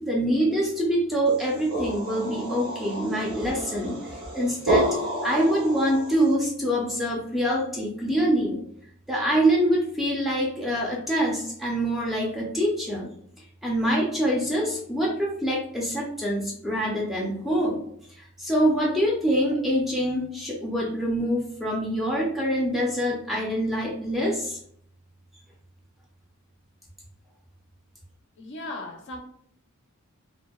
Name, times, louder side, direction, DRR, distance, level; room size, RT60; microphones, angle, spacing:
voice 1, 0.0-4.9 5.2-8.6 9.1-13.1 13.6-17.8 18.1-24.6, equal, ahead, -3 dB, 0.4 m, -25 dB
sound 1, 1.3-6.3, right 2 dB, 80° right, 0.9 m, -30 dB
voice 2, 28.4-29.2, left 2 dB, 55° left, 3 dB, 0.5 m, -37 dB
2.6 x 2.1 x 2.2 m, 0.65 s
head